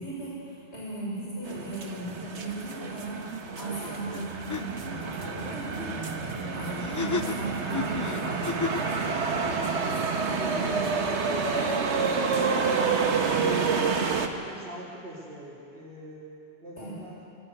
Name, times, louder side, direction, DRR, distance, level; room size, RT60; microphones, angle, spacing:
voice 1, 0.0-3.2 3.5-8.9 10.2-10.7 16.8-17.0, right 1 dB, 80° left, -7 dB, 6.6 m, -37 dB
sound 1, 1.5-14.3, right 5 dB, 85° right, 1.5 m, -29 dB
sound 2, 4.1-4.2 4.5-4.6 6.8-8.9, left 4 dB, 25° left, 0.4 m, -32 dB
voice 2, 5.1-5.5 9.6-9.9 10.2-12.3 12.7-16.2 16.6-17.2, right 1 dB, 60° right, -9 dB, 3.7 m, -42 dB
21.5 x 14.5 x 8.3 m, 2.7 s
omnidirectional pair, 1.1 m